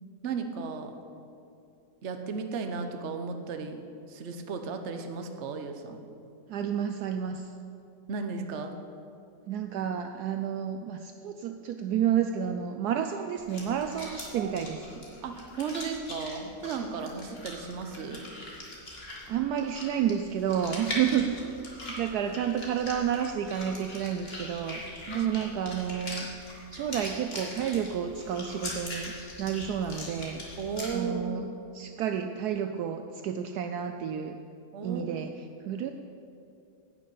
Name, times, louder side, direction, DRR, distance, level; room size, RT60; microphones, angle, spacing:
voice 1, 0.2-0.9 2.0-3.8 4.1-6.0 8.1-8.8 13.0-13.1 14.3-14.5 15.0-18.3 25.1-25.3 30.6-31.5 34.7-35.3 35.5-35.7, right 5 dB, 50° right, 6 dB, 1.0 m, -35 dB
voice 2, 6.5-7.5 9.5-14.9 19.3-24.8 25.1-26.3 26.7-30.4 30.9-34.4 34.8-35.3 35.6-35.9, right 9 dB, 75° right, 6 dB, 1.0 m, -30 dB
sound 1, 13.4-30.9, left 1 dB, 35° left, 2.2 m, -41 dB
11.0 x 6.5 x 8.6 m, 2.7 s
omnidirectional pair, 1.8 m